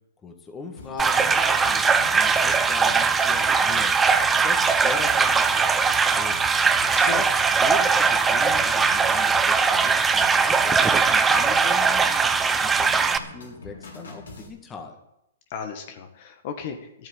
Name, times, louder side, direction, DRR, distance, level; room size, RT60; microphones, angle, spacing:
voice 1, 0.2-6.7 7.0-9.6 9.8-15.0, left 4 dB, 20° left, 4 dB, 2.0 m, -39 dB
sound 1, 0.8-14.5, left 2 dB, 85° left, 4.3 m, -43 dB
sound 2, 1.0-13.2, right 5 dB, 10° right, 0.8 m, -20 dB
voice 2, 6.8-7.2 15.5-17.1, left 7 dB, 50° left, 6 dB, 1.8 m, -35 dB
11.5 x 9.1 x 9.1 m, 0.82 s
hypercardioid pair, 135°, 0 cm